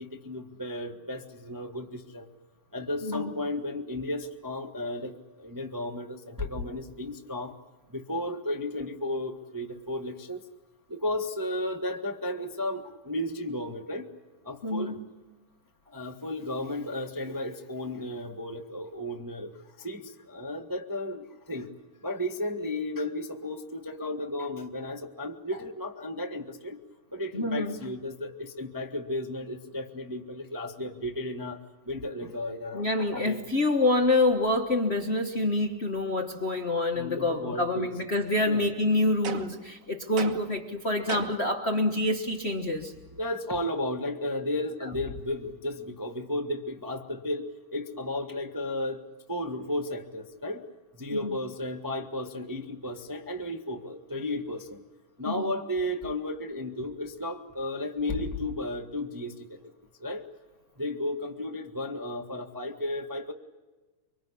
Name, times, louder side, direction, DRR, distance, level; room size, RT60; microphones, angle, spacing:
voice 1, 0.0-2.3 2.7-7.6 7.9-10.4 10.9-14.1 14.4-15.0 15.9-19.5 19.8-21.7 22.0-26.8 27.1-31.6 31.9-33.4 36.9-37.9 38.4-38.7 43.1-49.0 49.3-50.7 50.9-54.8 55.2-59.7 60.0-60.3 60.8-63.3, left 1 dB, 25° right, 3 dB, 0.4 m, -34 dB
voice 2, 14.6-15.0 27.3-27.8 32.7-42.9 51.2-51.4 55.2-55.5, left 2 dB, 55° left, 4 dB, 0.6 m, -27 dB
sound 1, 39.2-39.7 40.2-40.6 41.1-41.5, right 8 dB, 70° right, 2.7 m, -37 dB
25.0 x 25.0 x 8.4 m, 1.2 s
omnidirectional pair, 3.5 m